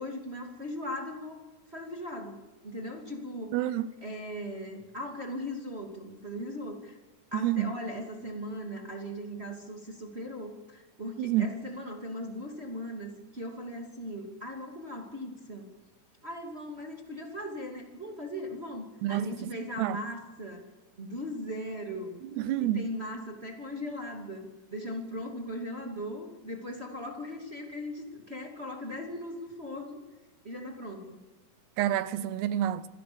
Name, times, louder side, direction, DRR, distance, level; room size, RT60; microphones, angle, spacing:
voice 1, 0.0-1.4 1.7-3.6 4.0-7.0 7.3-15.7 16.2-20.7 21.0-22.2 22.6-30.0 30.4-31.2, equal, 20° right, 2.0 m, -39 dB
voice 2, 3.5-3.9 7.4-7.7 11.2-11.5 19.0-19.5 19.8-20.0 22.4-22.8 31.8-32.9, right 12 dB, 80° right, 2.8 m, -28 dB
27.0 x 17.0 x 6.9 m
omnidirectional pair, 4.8 m